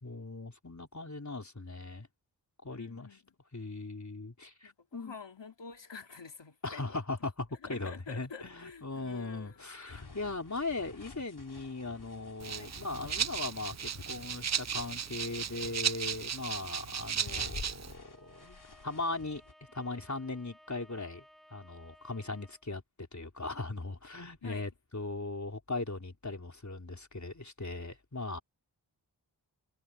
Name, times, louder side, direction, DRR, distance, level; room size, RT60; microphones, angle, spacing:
voice 1, 0.0-2.1 2.6-3.1 3.5-5.2 6.6-19.4 19.7-21.2 21.5-28.4, left 3 dB, 40° left, 4.0 m, -39 dB
voice 2, 2.7-3.3 4.6-7.0 7.6-9.6 12.5-12.7 24.4-24.7, left 5 dB, 75° left, 3.2 m, -48 dB
sound 1, 9.9-15.0 15.3-16.2 16.7-19.5, left 3 dB, 60° left, 4.4 m, -50 dB
Rattle (instrument), 12.4-17.9, right 8 dB, 40° right, 0.5 m, -35 dB
Bowed string instrument, 17.9-22.8, equal, ahead, 5.9 m, -60 dB
wide cardioid pair, 70°, 43 cm